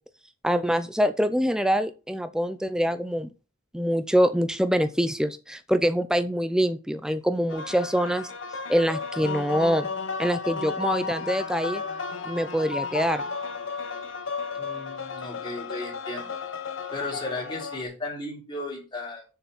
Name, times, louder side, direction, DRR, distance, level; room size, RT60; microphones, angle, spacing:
voice 1, 0.4-3.3 3.7-8.3 8.7-9.9 10.2-11.8 12.3-13.2, equal, 5° right, 10 dB, 0.5 m, -24 dB
sound 1, 7.5-17.8, left 4 dB, 70° left, 1.0 m, -33 dB
voice 2, 14.6-16.3 16.9-19.2, left 2 dB, 20° left, -2 dB, 3.4 m, -35 dB
6.9 x 6.5 x 6.0 m, 0.32 s
head